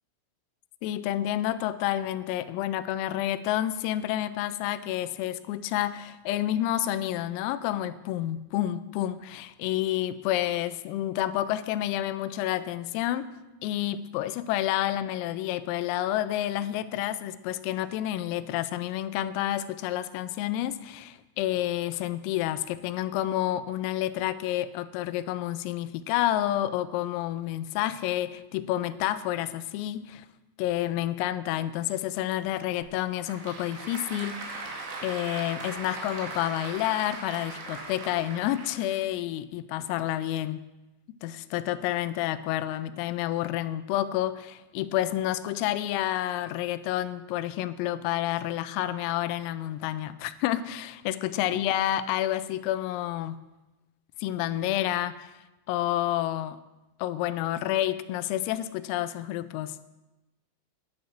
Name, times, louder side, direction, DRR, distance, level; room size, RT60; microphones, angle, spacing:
voice 1, 0.8-13.3 13.6-30.3 30.6-34.7 35.0-40.6 41.2-53.4 54.2-55.3 55.7-56.6 57.0-59.8, left 13 dB, 90° left, 13 dB, 3.3 m, -29 dB
Applause / Crowd, 32.8-39.0, right 3 dB, 65° right, 4.0 m, -39 dB
10.5 x 9.2 x 6.5 m, 1.0 s
omnidirectional pair, 5.9 m